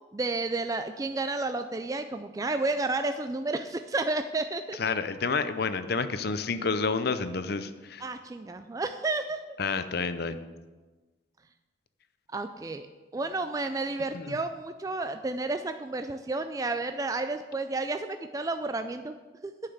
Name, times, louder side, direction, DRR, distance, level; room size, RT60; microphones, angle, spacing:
voice 1, 0.1-4.8 8.0-9.4 12.3-12.9 13.1-19.1 19.4-19.5, right 3 dB, 15° right, 8 dB, 0.3 m, -31 dB
voice 2, 4.8-8.0 9.6-10.4 14.1-14.4, left 4 dB, 50° left, 11 dB, 0.6 m, -29 dB
10.0 x 5.7 x 8.0 m, 1.3 s
head